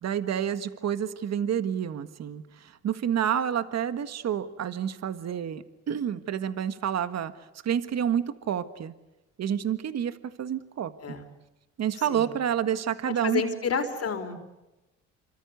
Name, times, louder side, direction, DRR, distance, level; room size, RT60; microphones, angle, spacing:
voice 1, 0.0-7.3 7.6-8.9 9.4-10.9 11.8-13.4, right 9 dB, 60° right, 11 dB, 1.6 m, -29 dB
voice 2, 11.9-12.4 13.0-14.3, left 5 dB, 50° left, 5 dB, 4.6 m, -30 dB
27.5 x 25.0 x 8.3 m, 1.0 s
cardioid pair, 90°, 30 cm